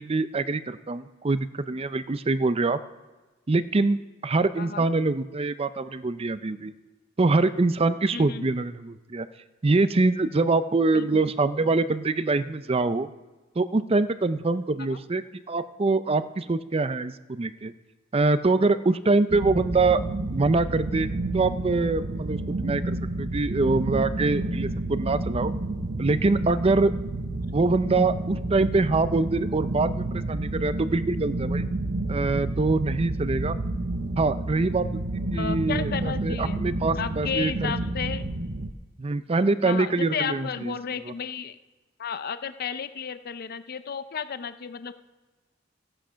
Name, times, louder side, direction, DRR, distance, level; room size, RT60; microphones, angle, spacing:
voice 1, 0.0-2.8 3.5-4.0 4.2-6.7 7.2-9.3 9.6-13.1 13.6-17.7 18.1-20.0 20.3-21.1 21.3-25.5 26.0-26.9 27.5-31.6 32.1-33.6 34.2-34.9 35.1-37.7 39.0-40.8 41.1-41.2, right 3 dB, 30° right, 13 dB, 0.5 m, -24 dB
voice 2, 4.6-4.9 8.1-8.5 10.9-11.2 14.9-15.0 27.4-27.5 35.3-36.7 37.0-38.3 39.6-41.6 42.0-44.9, left 6 dB, 50° left, 12 dB, 0.6 m, -33 dB
sound 1, 19.3-38.7, right 2 dB, 60° right, 0.8 m, -30 dB
15.5 x 8.9 x 5.7 m, 1.3 s
head